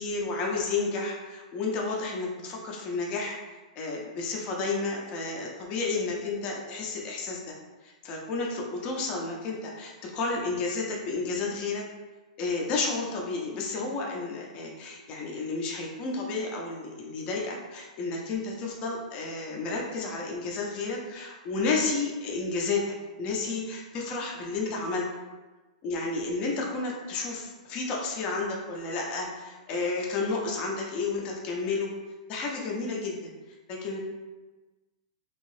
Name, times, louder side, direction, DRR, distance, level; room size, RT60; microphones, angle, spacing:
voice 1, 0.0-3.4 3.8-7.5 7.8-11.8 12.4-22.8 23.2-25.1 25.8-31.9 32.3-33.3 33.7-34.0, left 3 dB, 25° left, -1 dB, 0.5 m, -31 dB
3.0 x 2.7 x 3.1 m, 1.2 s
supercardioid pair, 165°, 4 cm